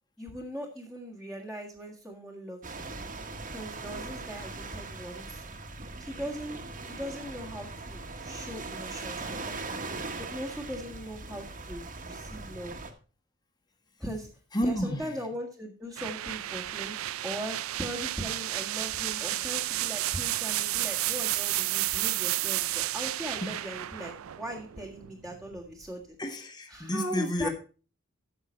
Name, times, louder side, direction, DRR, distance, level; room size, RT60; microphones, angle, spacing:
voice 1, 0.2-3.0 3.5-5.4 6.0-6.6 6.8-9.8 10.2-12.8 14.0-14.3 14.6-17.0 17.2-26.0 26.7-27.5, equal, ahead, -5 dB, 1.7 m, -39 dB
sound 1, 2.6-12.9, right 3 dB, 40° right, 1.4 m, -40 dB
voice 2, 14.5-15.1 23.4-23.5 26.2-27.5, equal, 20° left, 4 dB, 1.5 m, -30 dB
sound 2, 16.0-25.7, right 15 dB, 75° right, 0.4 m, -32 dB
14.0 x 5.9 x 4.4 m, 0.36 s
head